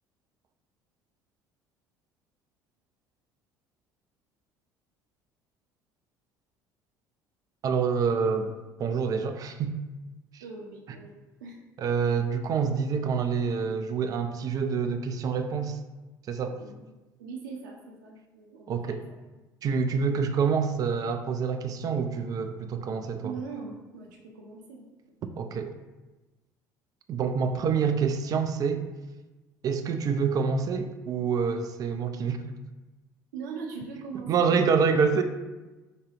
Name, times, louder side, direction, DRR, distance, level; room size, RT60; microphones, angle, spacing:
voice 1, 7.6-8.5 8.8-9.8 10.3-10.4 11.8-15.8 16.3-16.6 18.7-19.0 19.6-23.3 25.4-25.7 27.1-28.8 29.6-32.4 34.3-35.2, right 6 dB, 35° right, 7 dB, 0.4 m, -27 dB
voice 2, 10.4-11.6 16.6-16.9 17.2-19.0 23.2-24.8 33.3-34.6, right 5 dB, 70° right, 0 dB, 0.7 m, -41 dB
4.8 x 2.2 x 3.3 m, 1.1 s
figure-of-eight pair, 60°, 10 cm